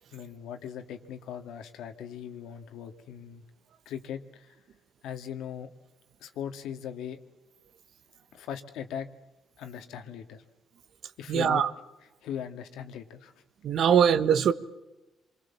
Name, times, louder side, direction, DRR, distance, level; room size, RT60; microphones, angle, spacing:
voice 1, 0.1-3.4 3.9-4.6 5.0-5.7 6.2-7.2 8.3-9.1 9.6-10.4 11.2-11.6 12.2-13.3, left 9 dB, 85° left, 2.1 m, -39 dB
voice 2, 11.3-11.7 13.6-14.5, right 8 dB, 65° right, 1.4 m, -22 dB
27.0 x 23.0 x 7.3 m
cardioid pair, 90°, 0 cm